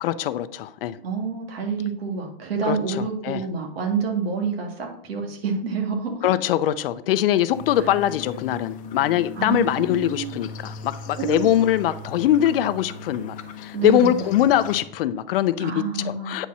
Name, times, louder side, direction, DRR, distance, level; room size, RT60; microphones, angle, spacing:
voice 1, 0.0-1.0 2.7-3.4 6.2-16.5, left 12 dB, 70° left, 0.6 m, -22 dB
voice 2, 1.0-6.3 7.8-7.9 9.4-10.4 11.2-11.5 13.7-14.3 15.6-16.5, right 5 dB, 80° right, 2.0 m, -28 dB
sound 1, 7.5-14.8, left 4 dB, 25° left, 0.8 m, -38 dB
9.0 x 4.2 x 6.1 m
supercardioid pair, 145°, 29 cm